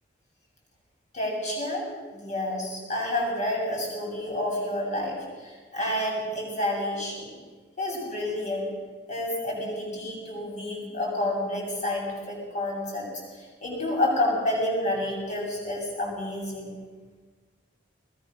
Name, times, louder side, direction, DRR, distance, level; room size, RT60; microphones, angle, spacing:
voice 1, 1.1-7.3 7.8-8.7 9.1-13.1 13.6-16.7, left 1 dB, 40° left, -2 dB, 7.8 m, -29 dB
21.0 x 20.5 x 6.5 m, 1.4 s
head